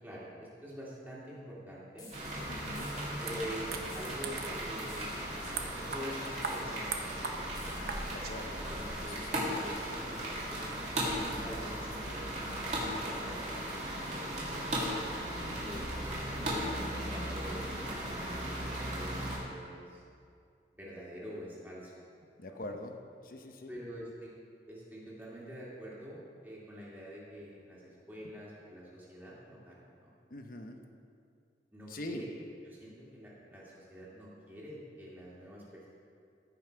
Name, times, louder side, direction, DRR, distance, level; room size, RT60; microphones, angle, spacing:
voice 1, 0.0-2.1 3.2-5.1 5.7-7.3 7.7-8.0 8.6-9.2 9.5-10.7 11.3-13.6 13.9-15.0 15.7-15.9 16.4-17.7 18.0-20.0 20.7-22.0 22.4-22.6 23.7-24.3 24.7-30.1 31.7-32.3 32.6-35.9, equal, 10° right, -7 dB, 2.1 m, -46 dB
sound 1, 2.0-2.3 2.8-3.1 3.9-4.2 4.9-5.3 6.4-6.7 7.5-7.9, left 2 dB, 20° left, 2.0 m, -53 dB
sound 2, 2.1-19.4, right 1 dB, 40° right, 2.2 m, -37 dB
voice 2, 2.5-2.9 8.1-8.6 9.0-9.4 11.2-11.6 15.4-15.8 22.4-23.0 23.2-23.7 30.3-30.8 31.9-32.2, left 1 dB, 50° left, 5 dB, 0.8 m, -43 dB
sound 3, 3.0-8.3, right 5 dB, 55° right, 0.8 m, -42 dB
15.5 x 5.7 x 4.5 m, 2.3 s
head